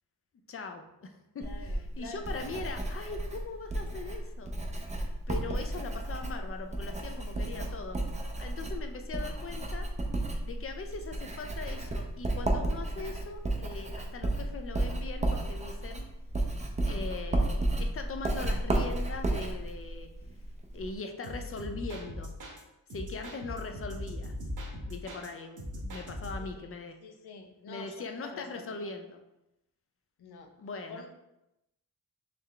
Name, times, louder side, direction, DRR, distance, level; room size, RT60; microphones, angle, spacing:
voice 1, 0.5-1.1 1.3-4.5 5.3-8.0 8.4-9.9 10.4-16.0 16.8-20.1 20.7-22.3 22.9-24.3 24.9-27.0 27.7-29.2 30.6-31.0, left 3 dB, 35° left, 6 dB, 0.4 m, -40 dB
voice 2, 1.4-2.2 26.4-26.7 27.0-28.9 30.2-30.5 30.9-31.1, left 4 dB, 80° left, 6 dB, 0.6 m, -47 dB
Writing, 1.4-20.9, right 1 dB, 20° right, 0.5 m, -33 dB
sound 1, 21.2-22.6 22.9-25.3 25.6-26.6, left 1 dB, 55° right, 1.0 m, -40 dB
3.8 x 3.3 x 3.2 m, 0.90 s
wide cardioid pair, 145°, 38 cm